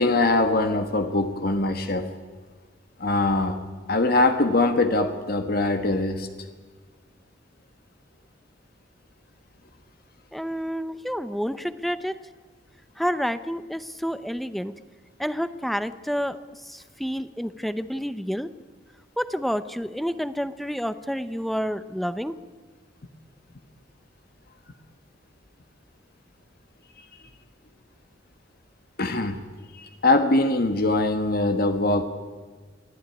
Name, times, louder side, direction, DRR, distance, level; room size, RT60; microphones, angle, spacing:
voice 1, 0.0-2.1 3.0-3.6 3.9-6.3 27.0-27.1 29.0-29.4 29.7-32.0, left 2 dB, 55° left, 7 dB, 1.4 m, -22 dB
voice 2, 10.3-12.2 13.0-14.7 15.2-18.5 19.2-22.3, equal, ahead, 13 dB, 0.8 m, -29 dB
25.0 x 15.5 x 9.9 m, 1.4 s
head